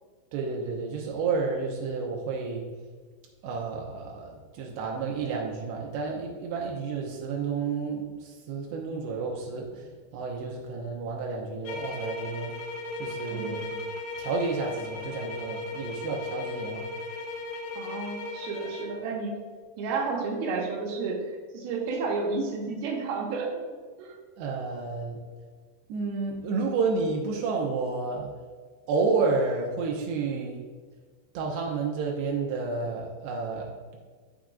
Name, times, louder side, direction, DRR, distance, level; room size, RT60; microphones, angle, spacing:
voice 1, 0.3-2.7 3.4-12.6 13.0-13.7 14.2-16.9 24.4-25.2 25.9-28.3 28.9-30.6 31.3-34.0, right 4 dB, 85° right, -1 dB, 3.0 m, -30 dB
sound 1, 11.7-19.0, left 2 dB, 80° left, 2.7 m, -36 dB
voice 2, 13.3-13.8 17.8-19.3 19.8-23.6 24.0-24.2, right 4 dB, 70° right, -1 dB, 3.2 m, -31 dB
14.0 x 6.2 x 2.4 m, 1.5 s
omnidirectional pair, 4.8 m